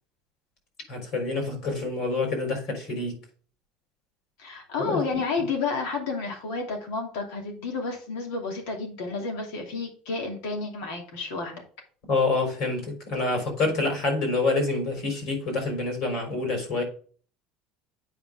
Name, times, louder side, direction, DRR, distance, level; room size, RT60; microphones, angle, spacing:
voice 1, 0.9-3.2 4.8-5.0 12.1-16.8, left 3 dB, 50° left, 4.2 m, -27 dB
voice 2, 4.4-11.6, left 4 dB, 75° left, 2.7 m, -31 dB
8.6 x 5.5 x 3.6 m
cardioid pair, 170°, 0 cm